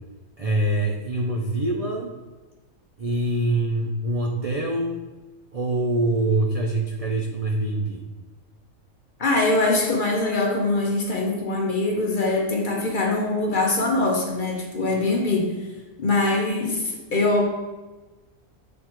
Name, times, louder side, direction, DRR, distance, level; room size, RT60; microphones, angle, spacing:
voice 1, 0.4-2.1 3.0-5.1 5.5-8.0, right 1 dB, 60° right, 1 dB, 0.3 m, -24 dB
voice 2, 9.2-15.5 16.0-17.4, left 2 dB, 40° left, 0 dB, 1.0 m, -23 dB
7.9 x 3.2 x 4.4 m, 1.2 s
omnidirectional pair, 1.5 m